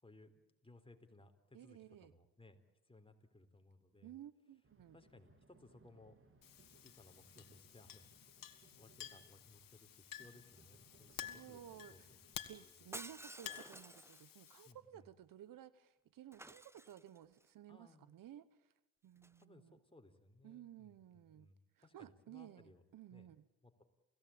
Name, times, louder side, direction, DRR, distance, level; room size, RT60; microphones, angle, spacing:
voice 1, 0.0-2.6 2.8-4.2 4.9-6.2 6.8-8.1 8.7-12.0 12.6-12.9 14.6-15.1 17.7-18.1 19.4-22.8 23.1-23.3 23.6-23.8, left 2 dB, 15° left, 6 dB, 3.8 m, -63 dB
voice 2, 1.5-2.1 4.0-5.0 11.1-12.1 12.5-18.7 19.0-19.8 20.4-21.5 21.8-23.4, right 11 dB, 70° right, 17 dB, 1.1 m, -56 dB
sound 1, 4.6-12.4, right 3 dB, 35° right, 3.3 m, -68 dB
Chink clink, 6.4-14.7, left 10 dB, 70° left, 2.1 m, -53 dB
Shatter, 12.9-14.5 16.3-17.4 19.2-19.4, right 1 dB, 5° right, 1.0 m, -52 dB
28.5 x 16.5 x 8.7 m, 1.0 s
supercardioid pair, 55°, 34 cm